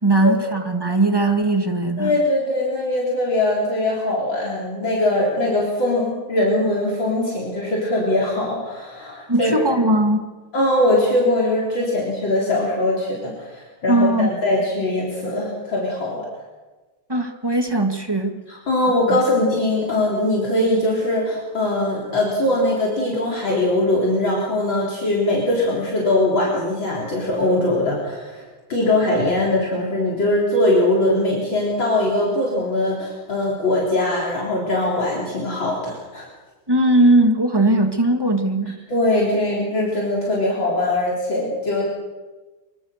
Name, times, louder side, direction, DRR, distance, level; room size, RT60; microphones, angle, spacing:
voice 1, 0.0-2.1 9.3-10.2 13.9-14.3 17.1-18.3 19.1-19.2 36.7-38.8, right 1 dB, 10° right, 5 dB, 1.8 m, -19 dB
voice 2, 2.0-9.7 10.5-16.3 18.5-28.4 28.7-36.3 38.9-41.8, left 1 dB, 60° left, -4 dB, 4.5 m, -21 dB
24.0 x 24.0 x 6.7 m, 1.2 s
omnidirectional pair, 2.4 m